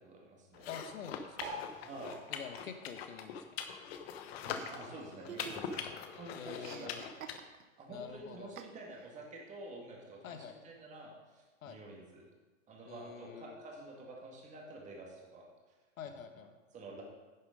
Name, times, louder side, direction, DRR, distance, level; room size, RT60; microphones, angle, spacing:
voice 1, 0.0-0.7 1.8-2.2 4.4-5.9 6.1-7.0 7.8-12.3 12.7-15.5 16.0-16.2 16.7-17.0, right 2 dB, 15° right, -1 dB, 2.2 m, -49 dB
sound 1, 0.5-7.4, left 7 dB, 50° left, 1.0 m, -43 dB
voice 2, 0.7-1.6 2.3-3.4 6.3-7.0 7.9-8.5 10.2-10.6 11.6-11.8 12.9-13.6 16.0-16.5, left 7 dB, 80° left, 7 dB, 1.4 m, -47 dB
sound 2, 1.3-4.1 4.4-6.0 6.5-6.6 6.7-6.8 7.0-7.4 8.2-8.3, equal, 40° right, 2.2 m, -48 dB
Chuckle chortle, 4.5-5.9 6.2-7.8 8.6-9.1, right 9 dB, 75° right, 1.0 m, -51 dB
10.5 x 6.8 x 5.2 m, 1.2 s
hypercardioid pair, 140°, 41 cm